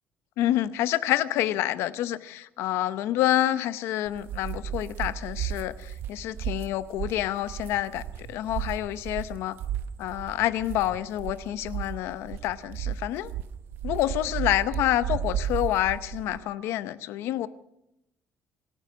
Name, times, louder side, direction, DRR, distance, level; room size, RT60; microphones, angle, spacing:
voice 1, 0.4-8.0 8.3-9.5 10.0-13.3 13.8-17.5, left 13 dB, 85° left, 14 dB, 0.8 m, -28 dB
sound 1, 4.1-16.4, right 9 dB, 60° right, 0.9 m, -34 dB
25.0 x 9.1 x 6.1 m, 0.88 s
cardioid pair, 180°, 4 cm